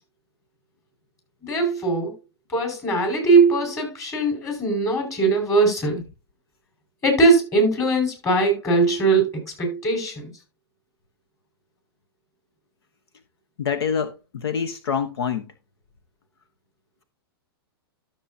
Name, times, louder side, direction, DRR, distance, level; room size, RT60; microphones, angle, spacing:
voice 1, 1.4-2.1 2.5-6.0 7.0-10.3, right 3 dB, 25° left, 5.3 m, -20 dB
voice 2, 13.6-15.5, left 7 dB, 75° left, 1.1 m, -26 dB
12.5 x 7.2 x 2.7 m
hypercardioid pair, 120°, 13 cm